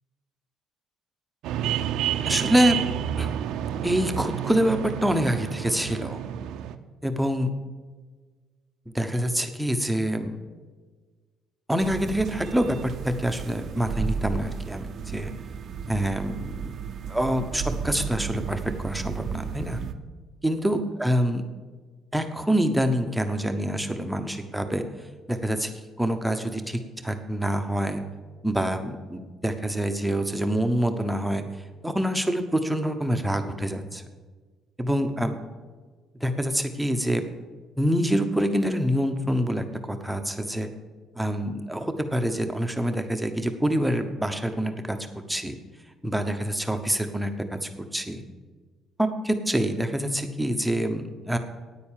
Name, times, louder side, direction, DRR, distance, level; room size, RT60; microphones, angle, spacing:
sound 1, 1.4-6.7, right 10 dB, 80° right, 0.7 m, -29 dB
voice 1, 2.2-2.8 3.2-3.3 3.8-6.2 7.0-7.5 8.9-10.4 11.7-15.3 15.9-16.7 17.1-19.8 20.4-21.4 22.1-24.8 25.3-28.0 28.4-31.4 31.8-34.0 34.8-35.4 36.2-37.3 37.8-40.7 41.2-45.0 45.3-45.6 46.0-48.2 49.0-51.4, equal, 5° right, 6 dB, 0.9 m, -26 dB
sound 2, 11.8-19.9, right 6 dB, 45° right, 0.7 m, -34 dB
9.5 x 9.4 x 7.4 m, 1.4 s
cardioid pair, 155°, 0 cm